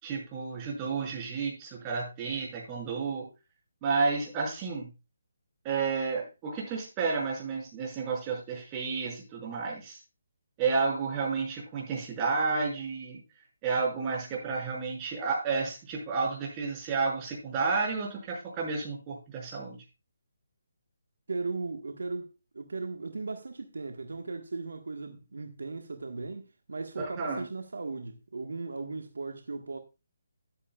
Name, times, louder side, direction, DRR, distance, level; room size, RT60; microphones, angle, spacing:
voice 1, 0.0-3.3 3.8-4.9 5.6-10.0 10.6-13.2 13.6-19.8 27.0-27.4, right 4 dB, 25° right, 5.8 m, -31 dB
voice 2, 21.3-29.8, right 3 dB, 75° right, 1.5 m, -37 dB
14.0 x 11.0 x 2.4 m
figure-of-eight pair, 150°, 0 cm